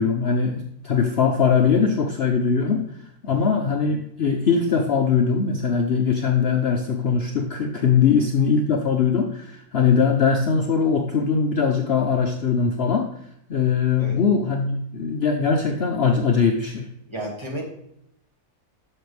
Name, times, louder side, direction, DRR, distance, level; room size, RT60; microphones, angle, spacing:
voice 1, 0.0-2.8 3.2-13.1 13.5-16.9, left 6 dB, 55° left, 3 dB, 0.8 m, -21 dB
voice 2, 17.1-17.6, right 1 dB, 20° right, -2 dB, 1.9 m, -33 dB
11.0 x 6.7 x 3.3 m, 0.74 s
omnidirectional pair, 1.5 m